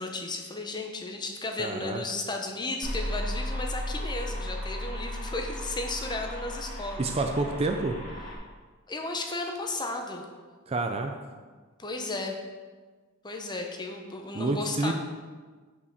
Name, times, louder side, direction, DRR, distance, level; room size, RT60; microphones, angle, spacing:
voice 1, 0.0-7.4 8.9-10.2 11.8-12.4 13.2-14.9, left 2 dB, 20° left, 3 dB, 0.8 m, -34 dB
voice 2, 1.6-2.0 7.0-8.0 10.7-11.1 14.3-14.9, right 3 dB, 30° right, 4 dB, 0.4 m, -28 dB
sound 1, 2.8-8.4, left 1 dB, 65° left, 2.0 m, -35 dB
5.5 x 5.4 x 6.4 m, 1.4 s
head